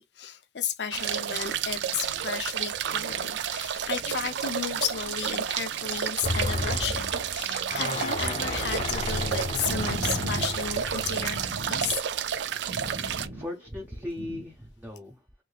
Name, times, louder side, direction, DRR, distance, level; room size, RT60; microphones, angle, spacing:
voice 1, 0.0-12.0, left 7 dB, 80° left, 0.6 m, -34 dB
sound 1, 0.9-13.3, right 9 dB, 80° right, 0.4 m, -31 dB
sound 2, 6.2-11.5 12.2-12.3, left 2 dB, 35° left, 0.5 m, -32 dB
sound 3, 9.2-14.4, right 1 dB, 55° right, 1.2 m, -38 dB
voice 2, 13.0-15.4, left 1 dB, 10° right, 0.5 m, -38 dB
3.2 x 3.1 x 2.3 m
head